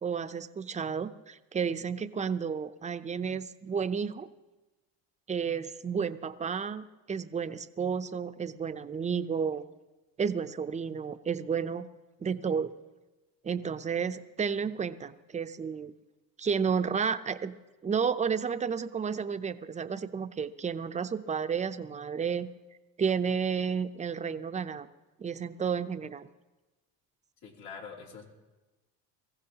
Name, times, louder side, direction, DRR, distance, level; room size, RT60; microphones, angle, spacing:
voice 1, 0.0-4.3 5.3-9.7 10.2-11.9 12.2-12.7 13.4-15.9 16.4-17.5 17.8-22.5 23.0-24.9 25.2-26.3, right 6 dB, 20° right, 11 dB, 0.6 m, -31 dB
voice 2, 27.4-28.3, left 5 dB, 85° left, -2 dB, 3.0 m, -44 dB
23.0 x 15.5 x 2.9 m, 1.1 s
cardioid pair, 120°, 36 cm